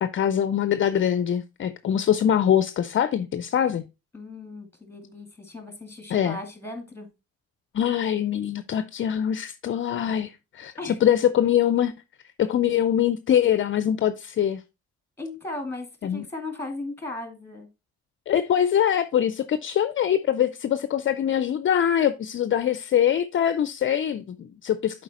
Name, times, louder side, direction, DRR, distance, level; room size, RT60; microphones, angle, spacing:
voice 1, 0.0-3.9 6.1-6.4 7.7-11.9 12.4-14.6 16.0-16.2 18.3-25.0, left 9 dB, 40° left, 0.5 m, -23 dB
voice 2, 4.1-7.1 10.8-11.0 15.2-17.7, left 2 dB, 10° left, 2.3 m, -36 dB
7.2 x 4.4 x 4.1 m
cardioid pair, 90°, 30 cm